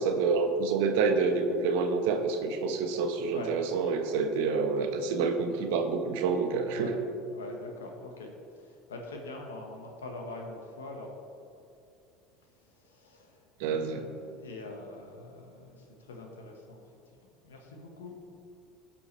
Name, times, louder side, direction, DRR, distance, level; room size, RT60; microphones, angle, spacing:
voice 1, 0.0-6.9 13.6-14.0, right 4 dB, 75° right, 5 dB, 1.0 m, -28 dB
voice 2, 6.7-11.1 12.7-16.8 17.4-18.4, left 2 dB, 90° left, 2 dB, 1.4 m, -44 dB
17.0 x 5.9 x 3.3 m, 2.6 s
hypercardioid pair, 75°, 0 cm